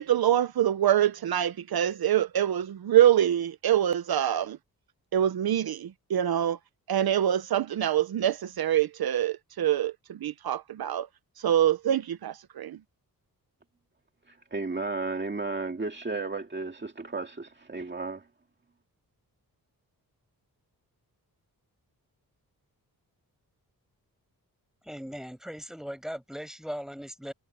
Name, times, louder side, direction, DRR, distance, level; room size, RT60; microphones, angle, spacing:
voice 1, 0.0-4.6 5.1-6.6 6.9-11.1 11.4-12.8, right 11 dB, 75° right, 0.9 m, -25 dB
voice 2, 14.3-18.2, right 3 dB, 30° right, 2.2 m, -33 dB
voice 3, 24.8-27.3, equal, ahead, 6.5 m, -38 dB
cardioid pair, 75°, 37 cm